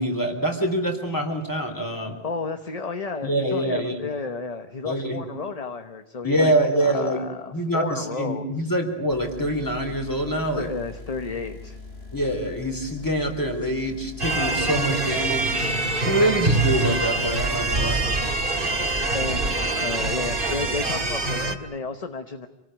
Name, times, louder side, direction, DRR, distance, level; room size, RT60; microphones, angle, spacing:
voice 1, 0.0-2.2 3.2-4.0 4.8-5.2 6.2-7.2 7.5-10.7 12.1-15.5 16.0-18.1, right 1 dB, 20° left, 4 dB, 3.7 m, -25 dB
voice 2, 2.2-8.7 10.6-11.8 19.1-22.5, left 4 dB, 40° left, 7 dB, 1.1 m, -32 dB
sound 1, 9.1-21.6, left 3 dB, 75° left, 3.5 m, -41 dB
sound 2, 14.2-21.5, right 2 dB, 60° right, 2.0 m, -24 dB
27.0 x 18.5 x 9.1 m, 0.89 s
omnidirectional pair, 1.1 m